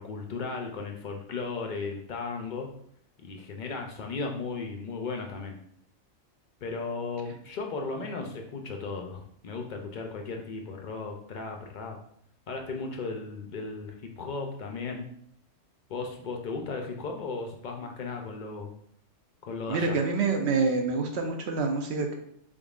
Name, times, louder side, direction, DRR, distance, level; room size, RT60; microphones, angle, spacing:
voice 1, 0.0-2.7 3.2-5.6 6.6-12.0 12.5-15.1 15.9-18.7 19.4-20.0, left 4 dB, 60° left, 3 dB, 0.5 m, -36 dB
voice 2, 19.7-22.2, right 4 dB, 65° right, 3 dB, 0.9 m, -27 dB
3.7 x 3.6 x 2.3 m, 0.68 s
omnidirectional pair, 1.3 m